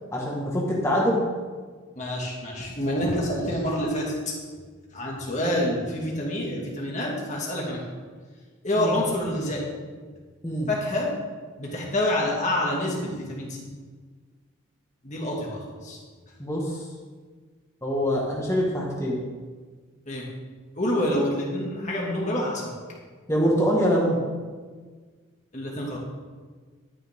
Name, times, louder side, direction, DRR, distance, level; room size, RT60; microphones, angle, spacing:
voice 1, 0.1-1.2 8.8-8.9 10.4-10.7 16.4-16.8 17.8-19.2 23.3-24.2, equal, 15° left, -4 dB, 1.7 m, -24 dB
voice 2, 2.0-4.1 4.9-7.8 8.6-9.6 10.7-11.1 11.6-13.6 15.0-16.0 20.1-20.2 20.8-22.7 25.5-26.0, left 1 dB, 35° left, -3 dB, 2.3 m, -27 dB
12.5 x 10.0 x 3.7 m, 1.5 s
head